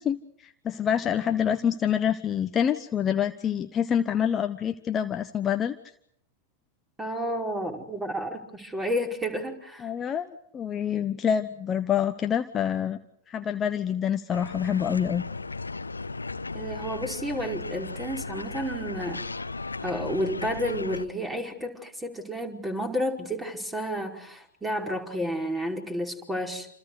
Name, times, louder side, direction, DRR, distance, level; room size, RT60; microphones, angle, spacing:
voice 1, 0.0-5.7 9.8-13.0 13.3-15.2, left 8 dB, 25° left, 9 dB, 1.1 m, -27 dB
voice 2, 7.0-9.9 16.5-19.3 19.8-26.7, equal, 10° right, 3 dB, 5.1 m, -31 dB
sound 1, 14.3-21.1, left 3 dB, 80° left, 1.1 m, -36 dB
29.0 x 28.0 x 5.0 m, 0.69 s
figure-of-eight pair, 90°, 0 cm